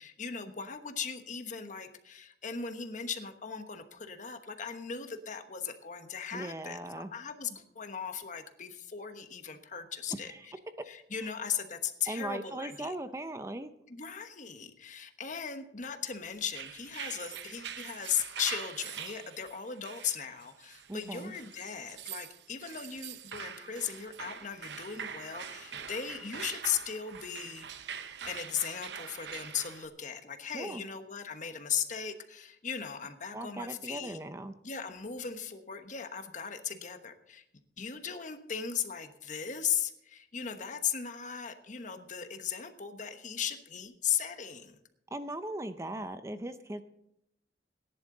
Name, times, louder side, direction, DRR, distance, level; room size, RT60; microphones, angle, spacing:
voice 1, 0.0-10.5 10.9-12.9 13.9-27.8 28.3-34.2 34.6-37.4 37.8-44.8, left 7 dB, 45° left, 8 dB, 1.1 m, -37 dB
voice 2, 6.3-7.1 10.2-10.4 12.1-13.7 20.9-21.3 30.5-30.8 33.3-34.5 45.1-46.8, right 1 dB, 15° right, 10 dB, 0.5 m, -39 dB
sound 1, 16.4-29.9, right 7 dB, 70° right, 0.8 m, -44 dB
18.0 x 10.5 x 3.9 m, 0.77 s
head